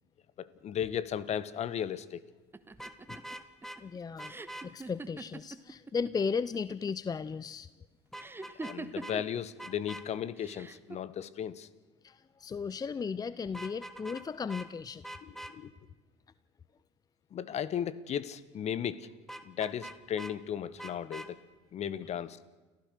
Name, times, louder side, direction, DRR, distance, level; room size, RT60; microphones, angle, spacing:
voice 1, 0.4-2.2 8.6-11.7 15.5-15.7 17.3-19.1 19.4-21.4 21.7-22.4, left 9 dB, 50° left, 17 dB, 1.4 m, -35 dB
sound 1, 2.5-6.1 6.4-7.1 8.2-9.4 10.4-11.0, right 3 dB, 15° right, 1.5 m, -43 dB
Vehicle horn car horn honking, 2.7-3.8 4.2-4.7 8.1-8.8 9.0-9.1 9.6-10.0 13.5-14.2 14.5-14.7 15.0-15.5 19.3-20.3 20.8-21.3, right 1 dB, ahead, 2.2 m, -43 dB
voice 2, 3.8-4.3 4.6-7.7 12.0-15.1, left 5 dB, 25° left, 17 dB, 0.7 m, -35 dB
29.5 x 15.0 x 6.6 m, 1.3 s
hypercardioid pair, 70°, 14 cm